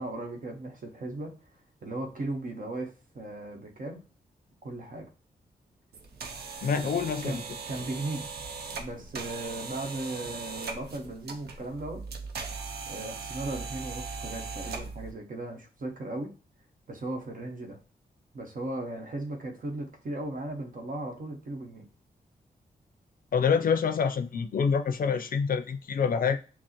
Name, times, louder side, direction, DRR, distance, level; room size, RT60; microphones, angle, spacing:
voice 1, 0.0-1.4 1.8-4.0 4.6-5.1 6.7-8.3 8.7-12.0 12.9-16.3 16.9-17.8 18.3-21.9, right 2 dB, 60° right, 1.0 m, -37 dB
sound 1, 5.9-15.1, right 4 dB, 85° right, 0.6 m, -39 dB
voice 2, 6.6-7.4 23.3-26.4, left 6 dB, 60° left, 0.4 m, -26 dB
6.0 x 2.0 x 2.9 m
cardioid pair, 60°, 16 cm